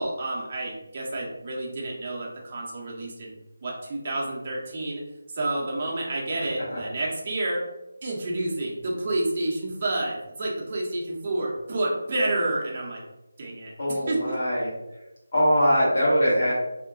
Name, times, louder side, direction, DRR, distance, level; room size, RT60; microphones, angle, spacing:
voice 1, 0.0-5.0 5.3-7.7 8.0-13.0 13.4-13.7 14.1-14.4, right 2 dB, 30° right, -3 dB, 0.6 m, -29 dB
voice 2, 13.8-14.7 15.3-16.5, equal, 50° left, -6 dB, 1.3 m, -22 dB
2.8 x 2.1 x 2.6 m, 0.97 s
figure-of-eight pair, 160°, 0 cm